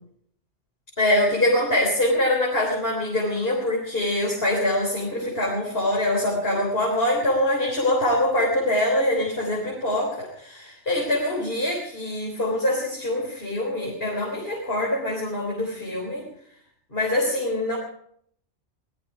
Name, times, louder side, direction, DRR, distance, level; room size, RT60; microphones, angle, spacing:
voice 1, 1.0-16.3 16.9-17.8, left 1 dB, 55° left, -2 dB, 4.0 m, -24 dB
19.0 x 13.5 x 4.8 m, 0.66 s
omnidirectional pair, 1.2 m